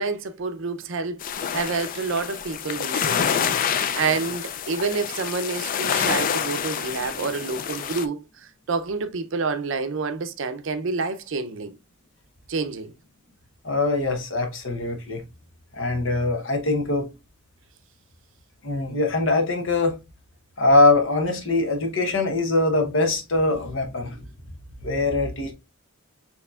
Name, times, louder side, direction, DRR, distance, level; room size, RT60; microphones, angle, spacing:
voice 1, 0.0-11.8 12.5-12.9, right 4 dB, 60° right, 0.5 m, -28 dB
sound 1, 1.2-8.1, left 7 dB, 40° left, 0.3 m, -27 dB
voice 2, 13.6-15.2 15.7-17.1 18.6-19.9 20.6-24.2 24.8-25.5, left 2 dB, 65° left, 0.9 m, -22 dB
6.6 x 2.9 x 2.3 m
head